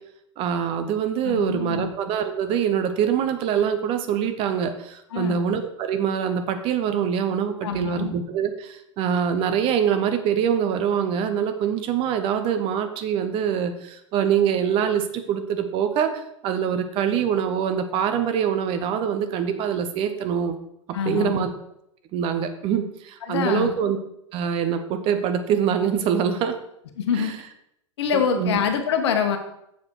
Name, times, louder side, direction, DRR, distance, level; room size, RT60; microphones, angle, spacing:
voice 1, 0.4-20.6 21.0-21.5 22.1-24.0 24.3-26.6 27.2-27.3 28.4-28.6, right 8 dB, 35° right, 8 dB, 0.9 m, -24 dB
voice 2, 1.2-1.9 5.1-5.4 7.6-8.1 20.9-21.5 23.3-23.7 27.0-27.3 28.0-29.4, left 7 dB, 60° left, 6 dB, 1.3 m, -25 dB
7.5 x 6.9 x 4.6 m, 0.76 s
figure-of-eight pair, 90°, 16 cm